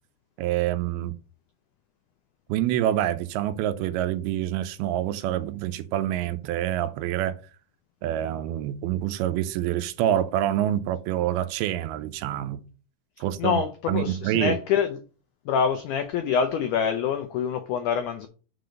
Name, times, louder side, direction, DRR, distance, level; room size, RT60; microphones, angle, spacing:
voice 1, 0.4-1.1 2.5-7.4 8.0-12.6 13.2-14.6, right 12 dB, 80° right, 2.5 m, -26 dB
voice 2, 13.9-14.9 15.5-18.3, left 7 dB, 90° left, 1.7 m, -25 dB
6.6 x 3.9 x 6.4 m
omnidirectional pair, 4.5 m